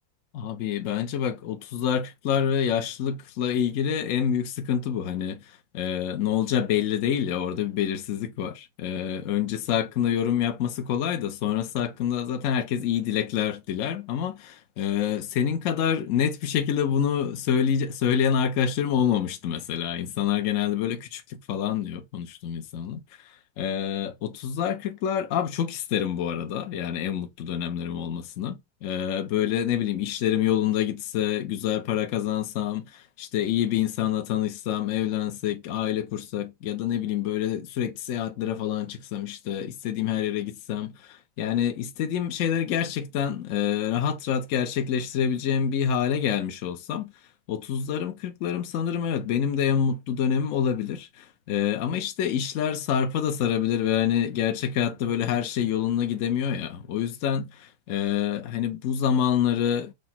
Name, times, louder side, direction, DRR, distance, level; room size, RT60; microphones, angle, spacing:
voice 1, 0.3-23.0 23.6-47.1 47.5-59.9, left 9 dB, 65° left, 0.8 m, -27 dB
4.8 x 2.1 x 4.3 m
omnidirectional pair, 2.1 m